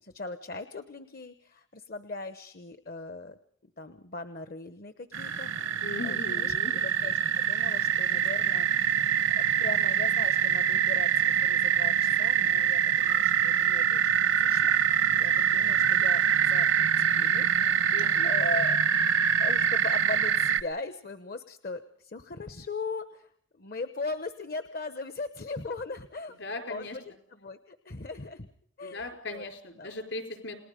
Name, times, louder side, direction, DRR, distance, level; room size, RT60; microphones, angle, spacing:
voice 1, 0.0-8.7 9.1-17.5 18.2-18.8 19.4-26.4 26.7-28.5 28.8-29.4 29.8-29.9, left 3 dB, 50° left, 11 dB, 0.9 m, -39 dB
sound 1, 5.1-20.6, right 8 dB, 75° right, 0.9 m, -25 dB
voice 2, 5.8-6.7 17.9-18.3 26.4-27.0 28.8-30.6, left 2 dB, 65° left, 5 dB, 4.7 m, -38 dB
29.5 x 19.5 x 5.1 m, 0.63 s
head